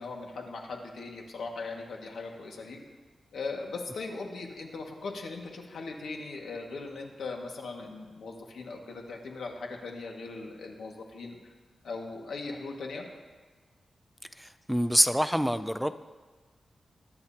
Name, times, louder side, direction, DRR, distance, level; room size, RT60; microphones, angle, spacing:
voice 1, 0.0-2.8 3.3-11.5 11.8-13.1, left 3 dB, 90° left, 1 dB, 1.9 m, -39 dB
voice 2, 14.4-16.0, equal, ahead, 12 dB, 0.3 m, -26 dB
22.0 x 10.5 x 2.9 m, 1.4 s
wide cardioid pair, 160°, 0 cm